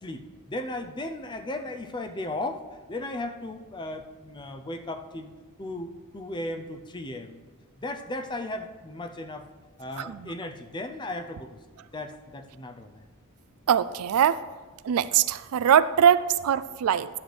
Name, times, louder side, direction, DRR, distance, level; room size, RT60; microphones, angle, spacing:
voice 1, 0.0-2.6 2.9-5.3 5.6-7.4 7.8-9.5 9.8-11.6 11.9-13.0, left 1 dB, 20° left, 7 dB, 0.5 m, -36 dB
voice 2, 10.0-10.3 13.7-14.4 14.8-17.1, right 9 dB, 75° right, 16 dB, 0.3 m, -22 dB
11.5 x 7.9 x 3.3 m, 1.3 s
head